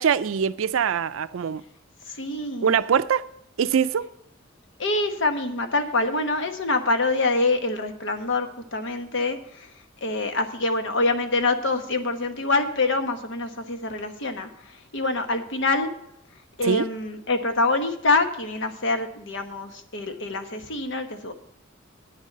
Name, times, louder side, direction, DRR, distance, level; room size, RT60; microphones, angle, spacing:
voice 1, 0.0-1.6 2.6-3.3 3.6-4.1 16.6-16.9, right 7 dB, 75° right, 0.4 m, -23 dB
voice 2, 2.2-2.8 4.8-9.7 10.0-15.9 16.6-21.3, left 2 dB, 65° left, 1.1 m, -25 dB
9.2 x 6.5 x 7.4 m
head